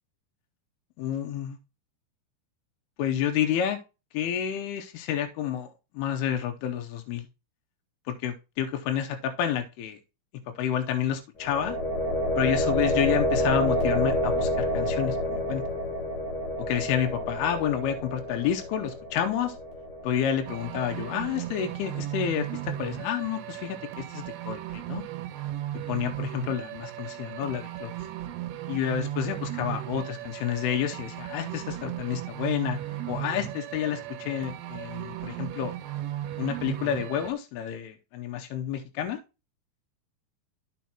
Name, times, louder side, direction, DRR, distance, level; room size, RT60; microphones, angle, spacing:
voice 1, 1.0-1.6 3.0-3.8 4.1-7.3 8.1-10.0 10.6-11.8 12.4-15.6 16.7-19.6 20.0-25.0 25.9-27.9 28.7-32.8 33.1-35.7 36.4-39.2, left 9 dB, 85° left, 5 dB, 2.6 m, -29 dB
sound 1, 11.4-21.2, left 1 dB, 50° left, 3.3 m, -29 dB
sound 2, 20.5-37.3, right 13 dB, 85° right, 2.7 m, -36 dB
13.5 x 4.7 x 2.9 m, 0.29 s
omnidirectional pair, 4.6 m